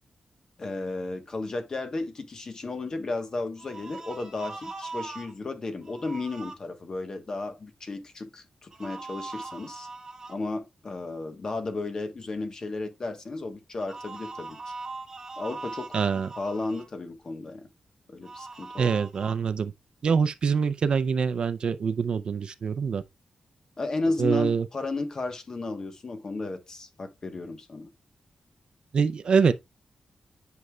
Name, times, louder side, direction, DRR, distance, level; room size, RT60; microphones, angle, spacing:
voice 1, 0.6-9.9 10.3-14.7 15.4-16.0 16.4-17.7 18.1-19.0 23.8-27.9, left 3 dB, 35° left, 1.1 m, -34 dB
sound 1, 3.6-5.3 5.8-6.5 8.7-10.4 13.8-16.9 18.2-19.3, right 3 dB, 25° right, 1.6 m, -40 dB
voice 2, 15.9-16.3 18.8-19.7 20.0-23.0 24.2-24.6 28.9-29.5, right 6 dB, 50° right, 0.4 m, -24 dB
9.4 x 5.4 x 2.3 m
wide cardioid pair, 180°, 2 cm